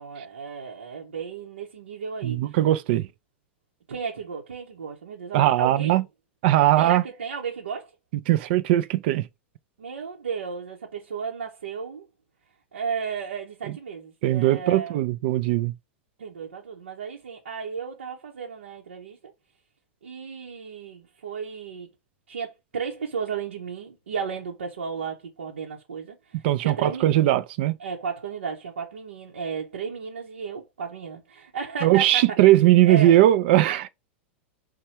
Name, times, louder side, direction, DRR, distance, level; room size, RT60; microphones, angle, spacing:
voice 1, 0.0-2.6 3.9-6.0 6.8-7.9 9.8-12.1 12.7-15.1 16.2-19.2 20.0-21.9 22.3-27.3 27.8-32.4 32.8-33.2, right 6 dB, 90° right, 0.8 m, -34 dB
voice 2, 2.2-3.1 5.3-6.0 6.4-7.0 8.3-9.3 14.2-15.7 26.4-27.7 31.8-33.9, right 14 dB, 60° right, 0.4 m, -19 dB
4.3 x 2.2 x 4.4 m
hypercardioid pair, 105°, 6 cm